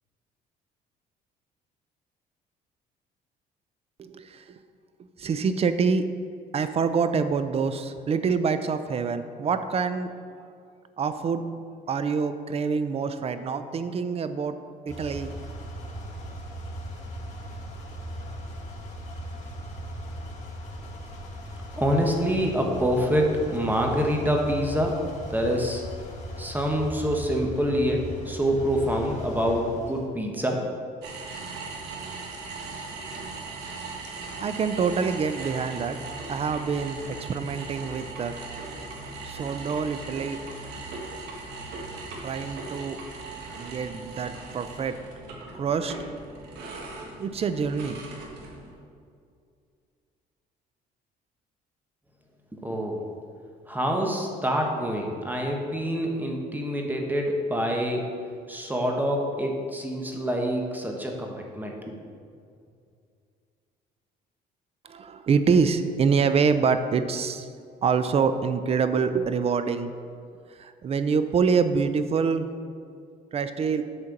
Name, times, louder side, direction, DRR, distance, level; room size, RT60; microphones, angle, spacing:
voice 1, 4.0-4.4 5.2-6.1 6.5-10.1 11.0-11.4 11.9-14.6 14.9-15.3 34.4-36.0 36.3-38.3 39.3-40.4 42.2-43.0 43.5-45.0 45.5-45.9 47.2-48.0 64.8-67.5 67.8-69.9 70.6-72.5 73.3-73.8, right 5 dB, 35° right, 10 dB, 0.5 m, -26 dB
sound 1, 14.9-30.0, equal, 40° left, 1.9 m, -38 dB
voice 2, 21.8-25.8 26.4-30.6 52.5-53.0 53.7-58.1 58.5-62.0, equal, 10° right, 1 dB, 1.1 m, -26 dB
sound 2, 31.0-48.7, right 3 dB, 80° right, 1.5 m, -39 dB
8.3 x 4.4 x 6.5 m, 2.3 s
cardioid pair, 110°, 17 cm